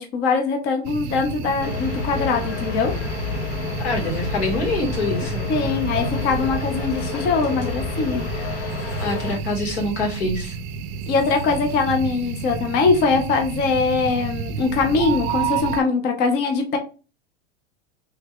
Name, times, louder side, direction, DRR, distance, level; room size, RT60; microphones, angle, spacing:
voice 1, 0.0-2.9 5.5-8.3 11.1-16.8, left 4 dB, 30° left, 5 dB, 0.5 m, -22 dB
sound 1, 0.8-15.8, right 5 dB, 50° right, 0.5 m, -30 dB
sound 2, 1.6-9.4, left 5 dB, 60° left, 0.9 m, -30 dB
voice 2, 3.8-5.5 9.0-10.5, left 2 dB, 85° left, 0 dB, 1.8 m, -25 dB
3.3 x 2.2 x 3.4 m, 0.33 s
supercardioid pair, 145°, 33 cm